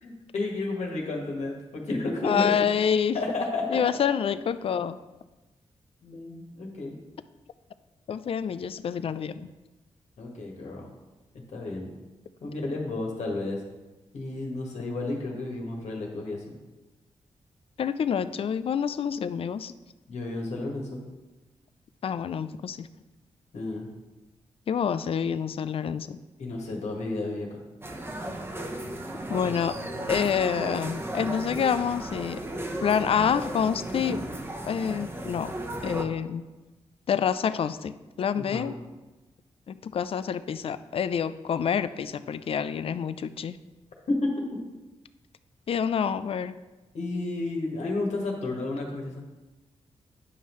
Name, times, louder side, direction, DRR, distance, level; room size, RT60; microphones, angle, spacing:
voice 1, 0.0-2.5 3.1-3.8 6.0-7.0 10.2-10.9 11.5-11.9 12.4-13.6 14.1-16.5 20.1-21.0 23.5-23.9 26.4-27.6 38.5-38.7 44.1-44.3 46.9-49.2, left 2 dB, 75° left, 0 dB, 1.6 m, -31 dB
voice 2, 2.2-3.2 3.7-5.0 8.1-9.5 17.8-19.7 22.0-22.9 24.7-26.2 29.3-29.8 30.1-32.4 32.8-34.3 34.6-35.5 35.8-36.4 37.1-38.7 39.7-43.6 45.7-46.6, left 7 dB, 55° left, 13 dB, 0.3 m, -27 dB
sound 1, 27.8-36.0, right 1 dB, 20° right, 0.9 m, -35 dB
9.3 x 5.5 x 3.1 m, 1.1 s
cardioid pair, 75°, 12 cm